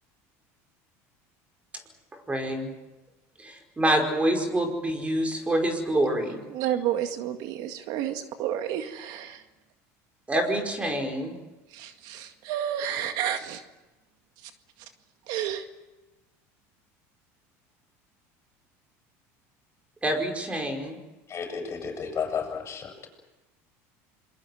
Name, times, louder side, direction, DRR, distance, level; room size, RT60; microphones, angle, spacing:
voice 1, 2.3-2.7 3.4-6.4 10.3-11.3 20.0-21.0, right 1 dB, 15° right, 4 dB, 5.1 m, -26 dB
voice 2, 6.5-9.4 11.7-13.6 14.4-14.5 14.8-14.9 15.3-15.7, right 10 dB, 65° right, 7 dB, 2.0 m, -31 dB
voice 3, 21.3-23.1, left 6 dB, 35° left, 4 dB, 7.9 m, -32 dB
27.0 x 22.0 x 7.9 m, 1.1 s
supercardioid pair, 110°, 8 cm